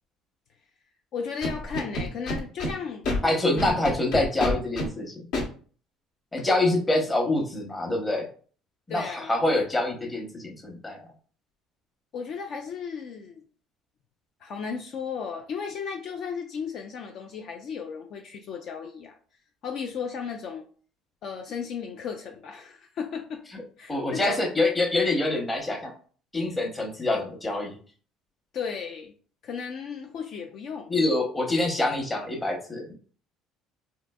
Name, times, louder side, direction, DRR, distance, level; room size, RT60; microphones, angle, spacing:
voice 1, 1.1-3.1 3.5-3.7 8.9-9.3 12.1-13.4 14.4-19.2 19.6-20.6 21.2-23.4 23.8-24.4 28.5-29.1 29.4-30.9, left 6 dB, 55° left, 3 dB, 0.4 m, -35 dB
Scratching (performance technique), 1.4-2.7 3.0-3.2 3.6-4.9 5.3-5.4, left 1 dB, 70° left, 1.0 m, -27 dB
voice 2, 3.2-5.3 6.3-8.3 8.9-11.0 23.5-23.6 23.9-25.9 26.3-27.8 30.9-32.9, left 2 dB, 15° left, 1 dB, 0.8 m, -26 dB
3.8 x 2.6 x 2.3 m, 0.43 s
cardioid pair, 120°, 0 cm